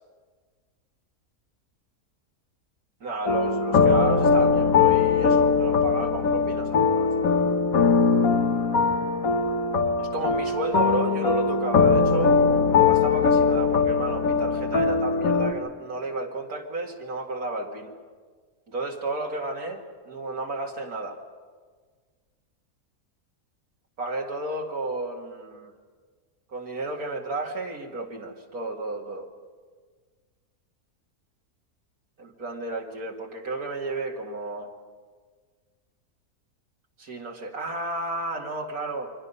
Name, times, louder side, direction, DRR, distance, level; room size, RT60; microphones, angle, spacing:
voice 1, 3.0-7.6 10.0-17.9 18.7-21.2 24.0-25.7 26.5-29.3 32.2-34.7 37.0-39.1, right 2 dB, 75° right, 0 dB, 2.5 m, -32 dB
sound 1, 3.3-15.5, left 5 dB, 70° left, 1.7 m, -21 dB
29.0 x 24.0 x 5.5 m, 1.5 s
omnidirectional pair, 1.5 m